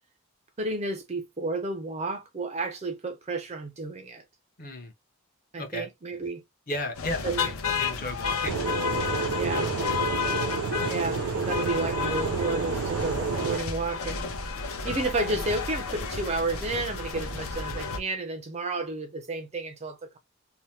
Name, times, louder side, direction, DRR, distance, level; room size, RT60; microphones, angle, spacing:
voice 1, 0.6-4.2 5.5-6.4 7.2-7.5 9.4-9.7 10.9-14.3 14.8-20.2, right 2 dB, 30° right, 0.4 m, -31 dB
voice 2, 4.6-4.9 5.6-5.9 6.7-7.5 7.8-10.0, left 2 dB, 40° left, 0.7 m, -36 dB
sound 1, 6.9-18.0, left 5 dB, 75° left, 0.7 m, -32 dB
sound 2, 8.5-13.6, right 5 dB, 90° right, 0.5 m, -30 dB
2.7 x 2.1 x 3.1 m
head